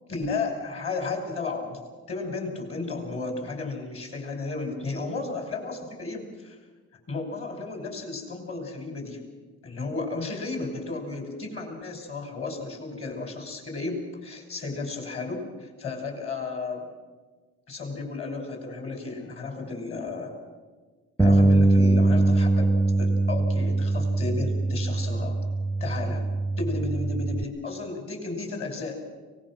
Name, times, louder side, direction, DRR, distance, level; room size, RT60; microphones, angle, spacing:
voice 1, 0.1-6.6 7.1-9.2 9.6-16.8 17.7-20.3 21.2-22.7 23.0-25.3 25.8-26.2 26.6-29.0, left 3 dB, 45° left, 3 dB, 6.0 m, -33 dB
Bass guitar, 21.2-27.4, right 2 dB, ahead, 0.6 m, -22 dB
24.5 x 19.5 x 6.2 m, 1.4 s
cardioid pair, 90°, 30 cm